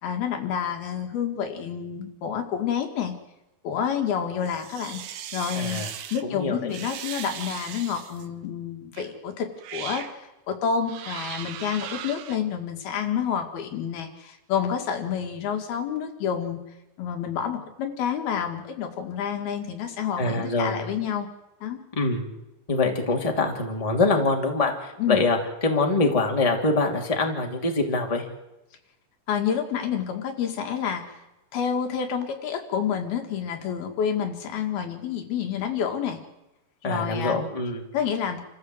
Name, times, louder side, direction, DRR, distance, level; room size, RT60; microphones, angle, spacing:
voice 1, 0.0-3.1 3.6-5.0 5.3-5.8 6.1-16.6 17.0-21.3 21.6-21.8 25.0-25.2 29.3-31.2 31.5-36.2 36.8-37.4 37.9-38.4, left 8 dB, 80° left, 4 dB, 3.9 m, -29 dB
sound 1, 4.4-6.2 6.7-8.3 9.0-9.1 9.6-10.2 10.9-12.4, right 10 dB, 85° right, 3.2 m, -38 dB
voice 2, 5.5-5.9 6.2-6.7 20.2-20.8 22.0-22.2 22.7-25.4 25.6-28.2 36.8-37.9, left 3 dB, 10° left, 2 dB, 2.2 m, -24 dB
28.5 x 14.5 x 7.8 m, 0.96 s
omnidirectional pair, 4.3 m